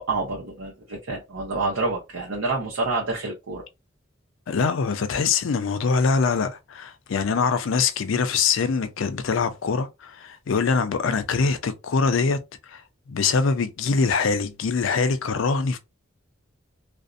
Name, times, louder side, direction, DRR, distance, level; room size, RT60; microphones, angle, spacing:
voice 1, 0.0-3.6, right 3 dB, 90° right, 0.7 m, -28 dB
voice 2, 4.5-12.4 12.7-12.8 13.1-15.8, left 5 dB, 70° left, 0.4 m, -23 dB
2.5 x 2.1 x 2.5 m
head